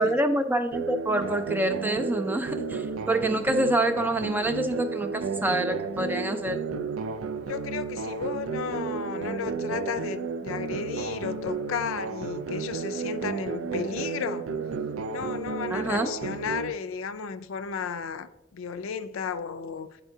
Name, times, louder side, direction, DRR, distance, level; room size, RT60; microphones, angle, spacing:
voice 1, 0.0-6.6 15.7-16.1, right 1 dB, 10° right, 0.4 m, -26 dB
sound 1, 0.7-16.7, right 5 dB, 85° right, 0.4 m, -33 dB
voice 2, 7.5-14.5 15.1-20.0, left 6 dB, 85° left, 0.4 m, -34 dB
9.0 x 4.3 x 2.7 m
head